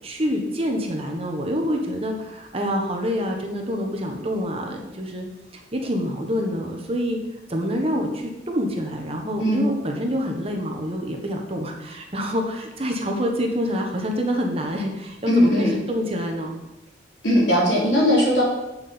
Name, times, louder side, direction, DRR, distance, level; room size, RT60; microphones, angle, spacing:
voice 1, 0.0-5.2 5.5-7.2 7.5-16.5, equal, 30° right, 2 dB, 1.3 m, -26 dB
voice 2, 15.3-15.7 17.2-18.4, equal, 70° left, -4 dB, 3.4 m, -18 dB
7.7 x 6.4 x 6.9 m, 0.97 s
head